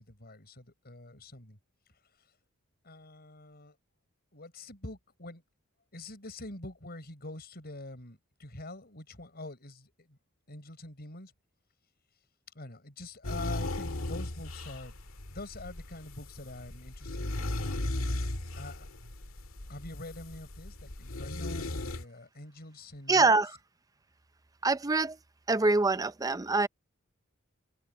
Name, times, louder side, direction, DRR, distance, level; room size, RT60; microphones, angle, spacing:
voice 1, 0.0-1.6 2.8-3.8 4.3-5.4 5.9-10.2 10.5-11.3 12.5-14.9 15.3-17.7 18.6-18.9 19.7-23.4, left 2 dB, 50° left, 6.1 m, -45 dB
sound 1, 13.2-22.0, left 1 dB, 75° left, 1.9 m, -36 dB
voice 2, 23.1-23.5 24.6-25.2 25.5-26.7, right 3 dB, 15° right, 0.5 m, -25 dB
head